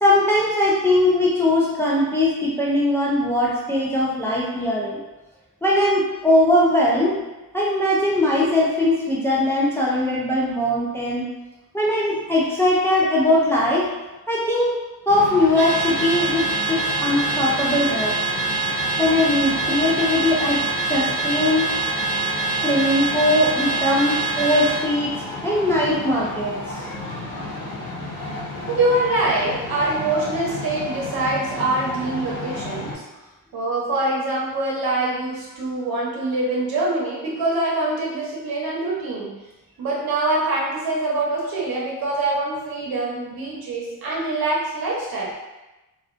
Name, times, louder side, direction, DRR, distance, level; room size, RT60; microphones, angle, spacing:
voice 1, 0.0-5.0 5.6-7.2 7.5-11.3 11.7-13.9 14.3-14.8 15.1-18.1 19.0-20.6 20.9-21.7 22.6-25.1 25.4-26.5, left 1 dB, 5° left, -5 dB, 0.3 m, -20 dB
voice 2, 8.1-8.5 28.7-33.0 33.5-39.3 39.8-45.3, right 2 dB, 80° right, -4 dB, 0.8 m, -24 dB
sound 1, 15.1-32.9, left 1 dB, 65° left, 0.8 m, -32 dB
Car / Alarm, 15.6-24.8, right 3 dB, 35° right, 0.6 m, -25 dB
2.4 x 2.2 x 2.4 m, 1.1 s
wide cardioid pair, 135°, 36 cm